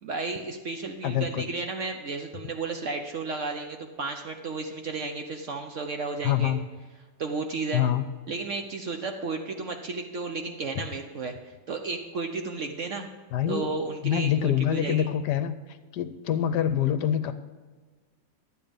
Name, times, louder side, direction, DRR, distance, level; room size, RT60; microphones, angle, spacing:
voice 1, 0.0-6.5 7.2-7.8 8.3-13.1 13.5-15.1, right 4 dB, 55° right, 4 dB, 0.9 m, -33 dB
voice 2, 1.0-1.6 6.2-6.6 7.7-8.0 13.3-13.7 14.0-15.6 15.9-17.3, left 10 dB, 75° left, 11 dB, 1.2 m, -25 dB
11.5 x 8.7 x 5.2 m, 1.4 s
omnidirectional pair, 1.9 m